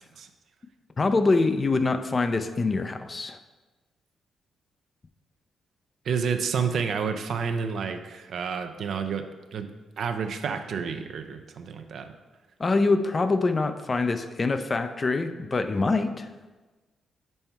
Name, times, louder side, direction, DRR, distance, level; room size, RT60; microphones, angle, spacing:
voice 1, 1.0-3.4 12.6-16.3, left 3 dB, 40° left, 9 dB, 0.5 m, -24 dB
voice 2, 6.1-9.7 10.0-12.1, right 6 dB, 65° right, 7 dB, 0.5 m, -30 dB
5.5 x 4.4 x 4.5 m, 1.2 s
hypercardioid pair, 45°, 0 cm